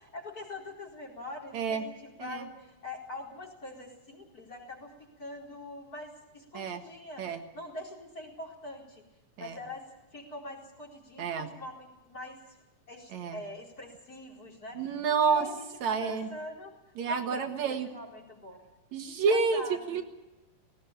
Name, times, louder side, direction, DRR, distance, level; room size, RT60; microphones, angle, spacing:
voice 1, 0.0-4.9 5.2-9.0 9.4-9.8 10.1-12.4 12.9-16.7 17.1-18.6 19.3-20.0, left 2 dB, 25° left, -1 dB, 4.7 m, -43 dB
voice 2, 11.2-11.5 13.1-13.4 14.7-15.5 15.8-16.3 17.0-17.9 18.9-19.6 19.9-20.0, right 5 dB, 65° right, 6 dB, 2.8 m, -29 dB
19.0 x 18.0 x 8.9 m, 1.1 s
omnidirectional pair, 3.7 m